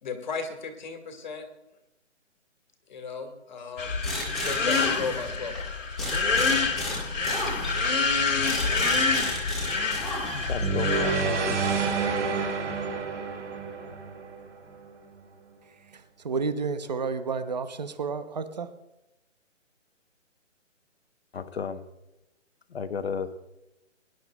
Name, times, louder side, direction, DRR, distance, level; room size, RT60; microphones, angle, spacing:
voice 1, 0.0-1.5 2.9-5.9, left 5 dB, 35° left, 1.8 m, -36 dB
sound 1, 3.8-11.2, left 4 dB, 80° left, 2.5 m, -27 dB
sound 2, 4.0-5.6 6.0-10.7, left 1 dB, ahead, 1.6 m, -34 dB
voice 2, 10.3-11.6 21.3-21.8 22.7-23.4, left 6 dB, 55° left, 1.1 m, -34 dB
sound 3, 10.6-14.8, right 4 dB, 65° right, 2.6 m, -28 dB
voice 3, 15.9-18.7, right 5 dB, 35° right, 0.8 m, -31 dB
23.0 x 11.0 x 2.4 m
hypercardioid pair, 170°, 38 cm